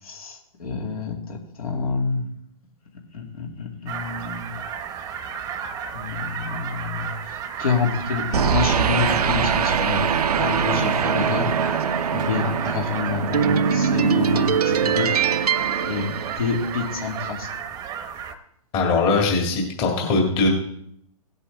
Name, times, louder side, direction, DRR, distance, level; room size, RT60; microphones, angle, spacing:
voice 1, 0.0-2.3 3.1-4.5 5.9-10.1 10.4-11.5 12.1-15.3 15.8-17.5, left 5 dB, 70° left, 1 dB, 2.5 m, -28 dB
sound 1, 3.9-18.3, right 7 dB, 20° right, 0.8 m, -33 dB
sound 2, 8.3-16.9, right 7 dB, 90° right, 0.6 m, -22 dB
voice 2, 18.7-20.5, left 3 dB, 30° left, 1 dB, 2.0 m, -21 dB
16.5 x 8.1 x 3.4 m, 0.71 s
hypercardioid pair, 135°, 19 cm